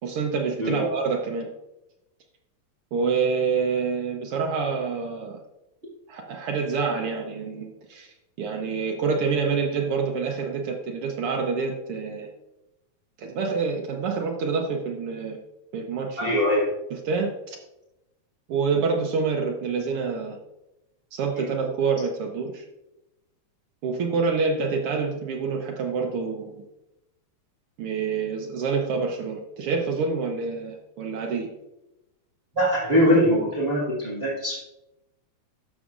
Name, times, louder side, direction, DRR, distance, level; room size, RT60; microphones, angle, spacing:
voice 1, 0.0-1.5 2.9-5.4 6.1-12.3 13.2-15.4 15.7-16.4 16.9-17.6 18.5-20.4 21.1-22.6 23.8-26.6 27.8-31.5, right 5 dB, 75° right, 2 dB, 1.3 m, -27 dB
voice 2, 16.2-16.6 32.5-34.6, equal, 25° right, -6 dB, 1.6 m, -22 dB
12.5 x 6.3 x 2.5 m, 0.92 s
omnidirectional pair, 3.5 m